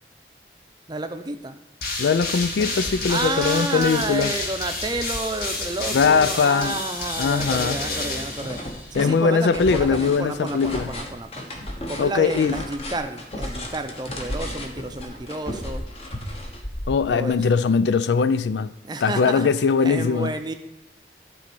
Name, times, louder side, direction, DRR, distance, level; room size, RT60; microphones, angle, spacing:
voice 1, 0.9-1.6 3.1-8.6 8.9-11.5 11.9-15.8 17.1-17.4 18.8-19.5 19.8-20.5, right 2 dB, 25° right, 0.6 m, -30 dB
sound 1, 1.8-9.1, left 2 dB, 55° left, 1.7 m, -30 dB
voice 2, 2.0-4.3 5.9-6.8 7.2-7.8 8.9-10.9 12.0-12.6 16.9-18.7 19.0-20.3, left 5 dB, 85° left, 0.4 m, -21 dB
sound 2, 2.8-4.0 4.4-6.0 6.5-9.1 9.5-10.7 11.2-11.3 11.7-12.9 13.3-13.5 13.9-15.6 16.0-16.1, equal, 15° left, 1.0 m, -45 dB
sound 3, 4.7-5.5 5.7-17.4, left 1 dB, 35° left, 1.1 m, -35 dB
12.0 x 4.2 x 6.1 m
head